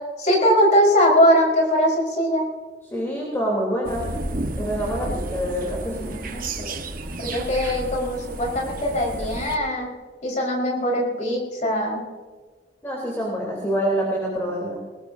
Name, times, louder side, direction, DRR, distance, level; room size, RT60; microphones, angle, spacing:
voice 1, 0.2-2.4 5.9-6.8 7.2-9.9 10.2-12.1, equal, 45° left, -3 dB, 4.8 m, -21 dB
voice 2, 2.8-4.1 4.6-6.0 12.8-14.8, equal, 15° left, -4 dB, 3.5 m, -26 dB
sound 1, 3.8-9.6, right 2 dB, 55° right, 1.3 m, -31 dB
21.0 x 20.5 x 2.8 m, 1.5 s
head